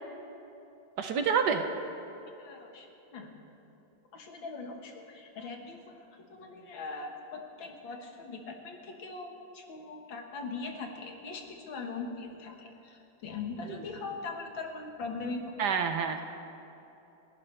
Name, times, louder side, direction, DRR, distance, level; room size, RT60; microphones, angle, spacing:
voice 1, 1.0-1.6 15.6-16.2, right 6 dB, 65° right, 6 dB, 1.3 m, -27 dB
voice 2, 2.4-3.3 4.1-15.6, left 4 dB, 75° left, 2 dB, 2.2 m, -41 dB
30.0 x 11.5 x 3.3 m, 2.9 s
omnidirectional pair, 2.1 m